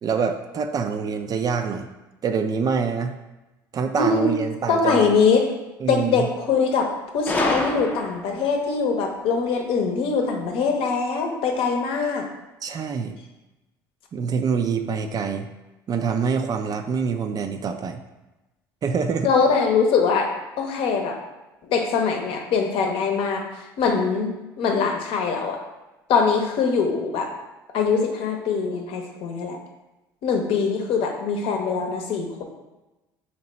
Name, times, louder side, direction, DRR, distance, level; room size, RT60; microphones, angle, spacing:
voice 1, 0.0-1.9 2.2-3.1 3.7-5.1 5.8-6.3 12.6-13.2 14.1-15.5 15.9-18.0 18.8-19.3, right 5 dB, 40° right, 7 dB, 0.4 m, -25 dB
voice 2, 4.0-4.3 4.7-5.5 5.9-12.3 19.2-21.2 21.7-23.5 23.8-25.6 26.1-27.3 27.7-29.6 30.2-32.4, left 5 dB, 65° left, 3 dB, 0.7 m, -22 dB
Gunshot gunfire, 7.3-8.5, left 2 dB, 15° left, 0.5 m, -26 dB
2.9 x 2.9 x 4.2 m, 1.1 s
hypercardioid pair, 75°, 10 cm